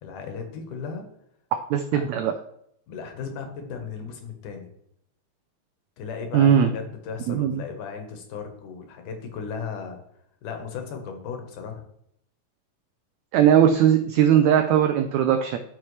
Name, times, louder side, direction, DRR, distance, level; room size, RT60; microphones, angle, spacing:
voice 1, 0.0-1.1 1.9-2.0 2.9-4.7 6.0-10.0 10.4-11.8, left 6 dB, 70° left, 5 dB, 2.7 m, -36 dB
voice 2, 1.7-2.3 6.3-6.7 7.3-7.6 13.3-15.6, right 9 dB, 85° right, 6 dB, 1.6 m, -19 dB
13.0 x 5.8 x 3.2 m, 0.72 s
omnidirectional pair, 3.9 m